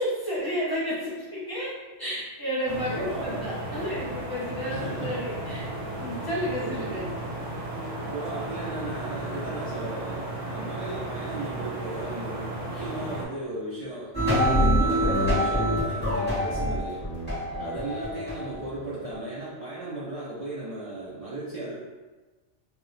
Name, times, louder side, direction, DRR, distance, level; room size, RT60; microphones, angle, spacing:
voice 1, 0.0-1.7 2.0-5.7 6.0-7.1 17.5-17.8, equal, 25° left, -9 dB, 0.5 m, -31 dB
sound 1, 2.7-13.3, right 1 dB, 80° right, 1.0 m, -34 dB
voice 2, 2.9-3.5 4.7-5.2 6.6-6.9 8.1-17.0 17.6-21.8, right 2 dB, 60° right, -8 dB, 0.3 m, -36 dB
sound 2, 14.1-19.1, equal, 10° left, 1.0 m, -25 dB
2.2 x 2.1 x 3.7 m, 1.2 s
omnidirectional pair, 1.3 m